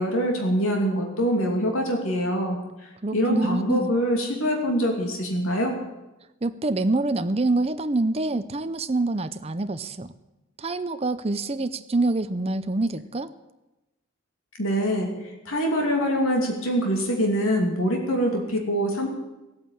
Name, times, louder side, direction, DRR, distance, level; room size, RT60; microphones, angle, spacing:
voice 1, 0.0-2.6 3.1-5.8 14.6-19.1, equal, 75° left, 1 dB, 2.7 m, -24 dB
voice 2, 3.0-4.0 6.4-10.1 10.6-13.3, right 2 dB, 30° right, 11 dB, 0.6 m, -26 dB
16.0 x 8.8 x 8.8 m, 1.0 s
head